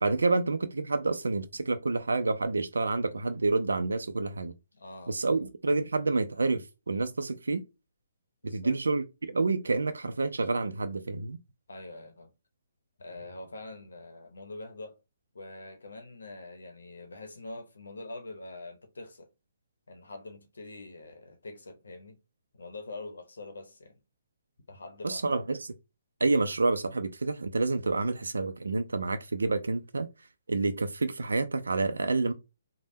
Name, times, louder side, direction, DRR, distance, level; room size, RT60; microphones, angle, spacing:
voice 1, 0.0-4.5 5.1-7.6 8.4-11.4 25.0-25.7 26.2-30.1 30.5-32.3, right 3 dB, 85° right, 0.3 m, -28 dB
voice 2, 4.7-5.3 8.4-8.8 11.7-12.3 13.0-15.0 15.3-19.3 19.9-22.2 22.5-24.0 24.7-25.4, left 2 dB, 80° left, 0.7 m, -44 dB
3.4 x 2.0 x 2.6 m
hypercardioid pair, 140°, 0 cm